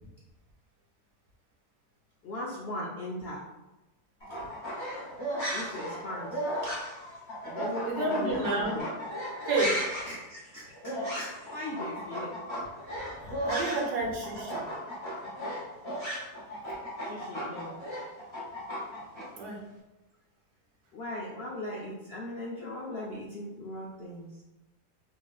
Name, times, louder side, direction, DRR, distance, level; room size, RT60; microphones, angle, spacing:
voice 1, 2.2-3.4 5.5-6.7 7.4-8.8 10.0-12.3 13.7-13.8 17.0-17.7 20.9-24.3, left 1 dB, 70° left, -5 dB, 0.5 m, -39 dB
sound 1, 4.2-14.0 14.2-19.2, equal, 20° left, 0.8 m, -35 dB
voice 2, 7.8-8.8 9.4-9.8 13.2-14.6 19.3-19.6, right 2 dB, 85° right, -2 dB, 1.4 m, -30 dB
4.0 x 2.7 x 2.3 m, 1.0 s
omnidirectional pair, 1.6 m